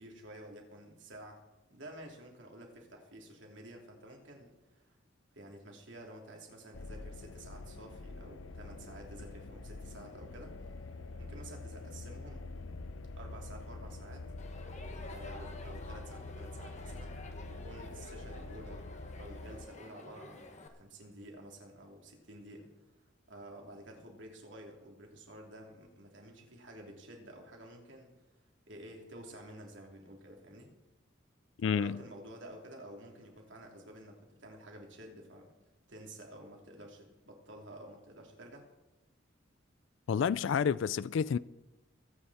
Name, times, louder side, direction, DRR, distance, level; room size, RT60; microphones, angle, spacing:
voice 1, 0.0-1.4 1.7-5.0 5.3-10.5 11.2-12.4 13.1-14.2 15.0-17.2 17.5-18.8 19.2-22.7 23.3-28.3 28.7-30.7 31.6-35.5 35.9-38.6, right 1 dB, 65° right, 3.1 m, -51 dB
sound 1, 6.7-19.7, left 2 dB, 90° left, 0.7 m, -45 dB
Crowd, 14.4-20.7, left 2 dB, 35° left, 1.5 m, -51 dB
voice 2, 31.6-32.0 40.1-41.4, left 7 dB, 70° left, 0.3 m, -29 dB
22.5 x 9.1 x 4.3 m
head